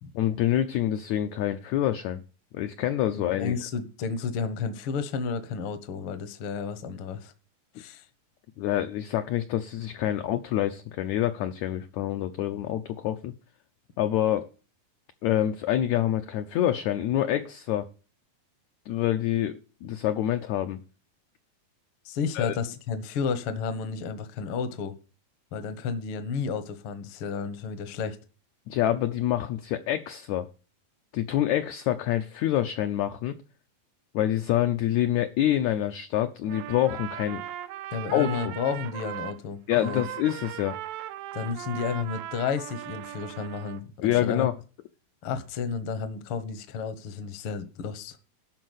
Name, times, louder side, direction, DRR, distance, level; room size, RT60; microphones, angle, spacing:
voice 1, 0.1-2.2 2.5-3.5 8.6-13.3 14.0-14.5 15.2-17.9 18.9-20.8 22.3-22.5 28.7-30.5 31.1-33.4 34.1-37.5 38.1-38.5 39.7-40.8 44.0-44.5, left 12 dB, 75° left, 1.7 m, -26 dB
voice 2, 3.1-7.3 7.8-8.1 22.0-24.9 25.5-28.2 37.9-40.0 41.3-44.5 45.2-48.2, left 5 dB, 60° left, 1.4 m, -32 dB
Trumpet, 36.4-39.4 39.7-43.8, right 13 dB, 80° right, 2.5 m, -38 dB
12.0 x 4.6 x 8.0 m
omnidirectional pair, 4.1 m